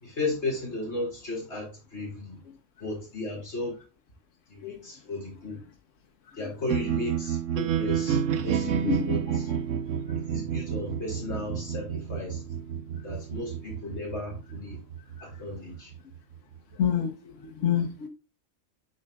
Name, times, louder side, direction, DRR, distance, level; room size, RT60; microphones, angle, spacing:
voice 1, 0.0-2.4 2.8-3.7 4.5-5.6 6.4-9.4 10.1-12.4 13.0-14.8 15.2-15.9, left 2 dB, 60° left, 3.2 m, -35 dB
sound 1, 6.7-16.8, right 8 dB, 80° right, 1.1 m, -31 dB
voice 2, 8.6-9.1 16.8-17.2 17.4-18.1, left 8 dB, 75° left, 1.2 m, -27 dB
7.5 x 6.5 x 2.3 m
omnidirectional pair, 1.3 m